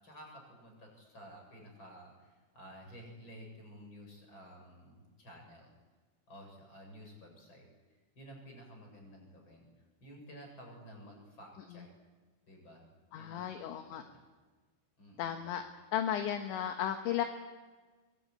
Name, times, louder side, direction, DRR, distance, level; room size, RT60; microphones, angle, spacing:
voice 1, 0.0-5.7 6.3-9.7 10.0-11.9 12.5-14.3 15.0-15.5, equal, 20° left, 1 dB, 8.0 m, -53 dB
voice 2, 13.1-14.0 15.2-15.6 15.9-17.3, left 10 dB, 70° left, 6 dB, 3.3 m, -34 dB
24.5 x 23.5 x 9.4 m, 1.4 s
omnidirectional pair, 5.9 m